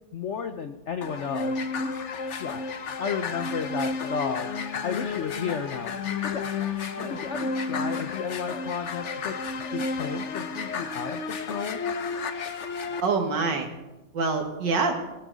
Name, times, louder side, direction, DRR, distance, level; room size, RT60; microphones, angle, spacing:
voice 1, 0.1-1.5 1.8-1.9 2.4-2.6 3.0-4.5 4.8-5.9 6.3-6.5 7.1-9.4 9.7-11.8, left 6 dB, 70° left, 8 dB, 0.6 m, -33 dB
sound 1, 1.0-13.0, left 4 dB, 50° left, 0.9 m, -32 dB
voice 2, 6.9-7.3 13.0-13.7 14.1-14.9, right 4 dB, 65° right, 4 dB, 2.3 m, -26 dB
19.0 x 12.5 x 4.0 m, 1.0 s
omnidirectional pair, 2.1 m